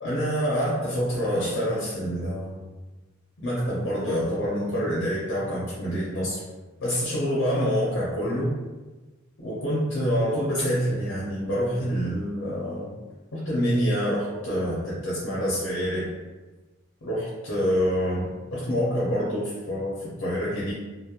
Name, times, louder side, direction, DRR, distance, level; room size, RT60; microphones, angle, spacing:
voice 1, 0.0-2.6 3.4-6.4 6.8-8.5 9.4-12.9 13.3-16.1 17.0-20.7, equal, 65° left, -7 dB, 0.6 m, -26 dB
2.9 x 2.0 x 2.3 m, 1.2 s
head